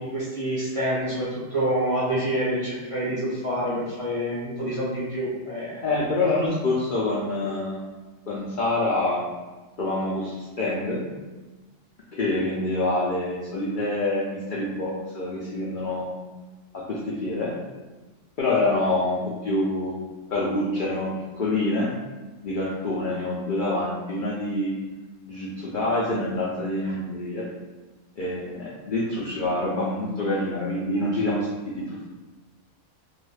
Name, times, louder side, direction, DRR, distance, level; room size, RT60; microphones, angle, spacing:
voice 1, 0.0-5.8, right 1 dB, 35° right, -8 dB, 0.6 m, -27 dB
voice 2, 5.8-7.8 8.3-9.2 9.8-11.0 12.1-16.2 16.7-17.5 18.4-20.0 20.3-21.1 21.4-21.9 22.4-24.7 25.2-27.4 28.2-32.0, left 2 dB, 70° left, -5 dB, 0.4 m, -26 dB
2.5 x 2.3 x 3.2 m, 1.2 s
omnidirectional pair, 1.4 m